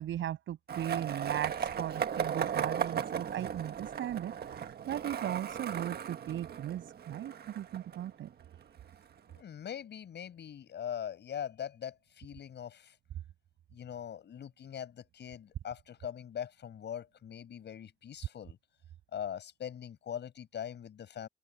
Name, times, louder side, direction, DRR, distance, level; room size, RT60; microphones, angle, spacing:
voice 1, 0.0-8.3, right 11 dB, 75° right, 7.5 m, -37 dB
Skateboard, 0.7-8.6, right 8 dB, 55° right, 1.5 m, -36 dB
voice 2, 9.3-13.0 13.7-18.6 19.1-21.3, left 9 dB, 60° left, 7.1 m, -42 dB
open air
cardioid pair, 90°, 20 cm